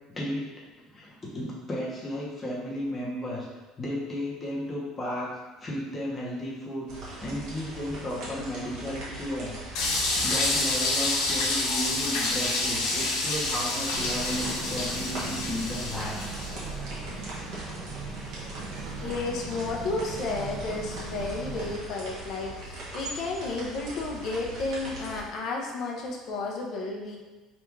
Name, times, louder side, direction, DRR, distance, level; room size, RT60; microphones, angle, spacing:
voice 1, 0.9-3.5 3.8-5.3 5.6-9.8 10.2-16.2 16.7-16.9, left 1 dB, 15° left, -5 dB, 0.9 m, -34 dB
sound 1, 6.9-25.2, right 1 dB, 55° right, 1.3 m, -41 dB
sound 2, 9.7-16.6, left 2 dB, 85° left, 0.9 m, -28 dB
sound 3, 13.9-21.8, right 3 dB, 35° right, 0.7 m, -38 dB
voice 2, 19.0-27.2, left 3 dB, 45° left, 0 dB, 0.7 m, -32 dB
3.4 x 2.6 x 4.5 m, 1.2 s
cardioid pair, 165°, 0 cm